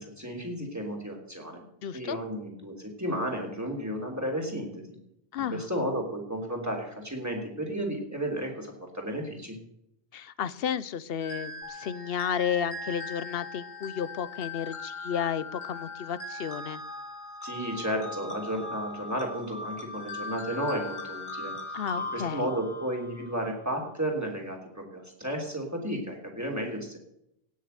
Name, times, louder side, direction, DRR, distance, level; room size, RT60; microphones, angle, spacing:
voice 1, 0.0-1.6 1.9-5.0 5.5-9.6 17.4-21.5 22.1-27.0, equal, 15° right, 1 dB, 3.1 m, -33 dB
voice 2, 1.8-2.2 5.3-5.6 10.1-16.8 21.7-22.5, left 8 dB, 70° left, 18 dB, 0.9 m, -32 dB
sound 1, 11.2-23.6, left 2 dB, 50° left, 2.7 m, -40 dB
sound 2, 11.6-19.2, left 6 dB, 90° left, 4.0 m, -48 dB
17.5 x 6.7 x 6.5 m, 0.80 s
omnidirectional pair, 1.0 m